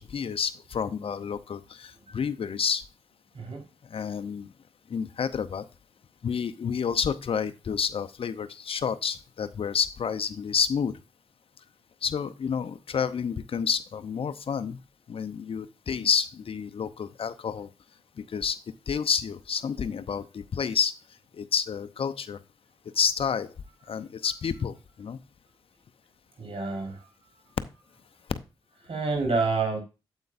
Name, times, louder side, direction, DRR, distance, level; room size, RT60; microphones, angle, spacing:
voice 1, 0.0-2.8 3.9-4.5 4.9-5.6 6.2-10.9 12.0-14.8 15.1-17.7 18.3-18.6 18.9-20.9 21.4-22.4 23.0-23.5 23.9-24.7 25.0-25.2, left 7 dB, 60° left, 11 dB, 0.7 m, -29 dB
voice 2, 26.4-27.0 28.9-29.8, right 4 dB, 60° right, 2 dB, 4.3 m, -28 dB
9.2 x 8.1 x 2.6 m, 0.29 s
supercardioid pair, 45°, 11 cm